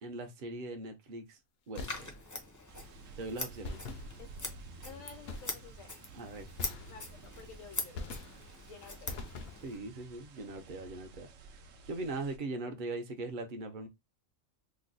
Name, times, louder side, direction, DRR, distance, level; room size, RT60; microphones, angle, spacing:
voice 1, 0.0-1.4 1.7-2.1 3.2-3.8 6.1-6.5 9.6-11.3 11.9-13.9, right 2 dB, 45° right, 0.7 m, -40 dB
Scissors, 1.7-9.8, left 2 dB, 25° left, 0.4 m, -43 dB
sound 1, 1.8-2.5 3.6-4.6 5.3-5.9 6.6-7.4 7.9-8.7 9.1-9.9, left 3 dB, 60° left, 0.7 m, -44 dB
sound 2, 2.7-12.4, right 3 dB, 70° right, 1.0 m, -53 dB
voice 2, 4.8-5.9 6.9-8.0 8.6-9.3, left 6 dB, 80° left, 1.3 m, -51 dB
3.1 x 2.1 x 3.9 m
omnidirectional pair, 1.4 m